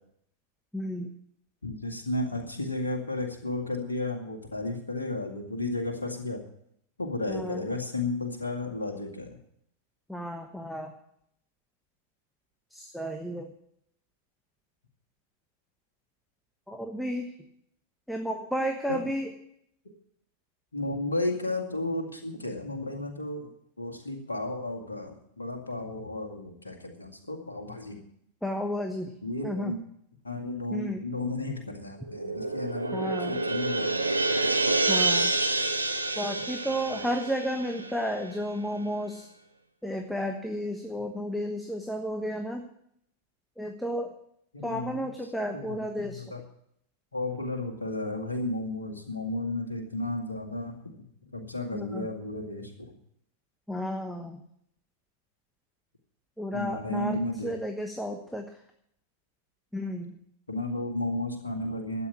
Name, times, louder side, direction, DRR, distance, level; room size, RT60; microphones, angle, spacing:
voice 1, 0.7-1.1 7.3-7.7 10.1-10.9 12.7-13.5 16.7-17.3 18.1-19.3 28.4-29.1 29.4-29.7 30.7-31.0 32.9-33.4 34.9-35.3 36.2-39.3 39.8-42.6 43.6-44.1 44.6-46.3 51.7-52.1 53.7-54.4 56.4-58.5 59.7-60.2, equal, ahead, 4 dB, 1.2 m, -32 dB
voice 2, 1.6-6.4 7.0-9.4 18.9-19.1 20.7-23.5 23.8-28.0 29.2-29.8 30.2-33.9 36.9-37.0 44.5-45.1 45.5-46.4 47.1-51.1 51.3-52.9 56.5-57.5 60.5-62.1, left 2 dB, 75° left, 2 dB, 2.1 m, -33 dB
sound 1, 32.0-38.6, right 2 dB, 85° right, 0.9 m, -28 dB
12.5 x 8.5 x 8.6 m, 0.71 s
figure-of-eight pair, 90°, 0 cm